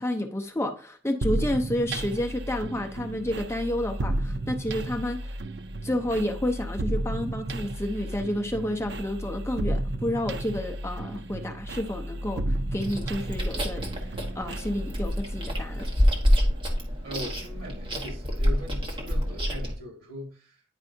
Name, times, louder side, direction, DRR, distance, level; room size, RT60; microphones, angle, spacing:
voice 1, 0.0-5.3 5.8-15.9, left 1 dB, 15° left, 0.6 m, -30 dB
sound 1, 1.2-16.8, right 1 dB, 60° right, 0.5 m, -33 dB
Chewing mastication, 12.8-19.7, equal, 25° right, 1.3 m, -27 dB
voice 2, 17.0-20.6, equal, 80° right, 1.9 m, -40 dB
9.9 x 4.7 x 2.7 m
head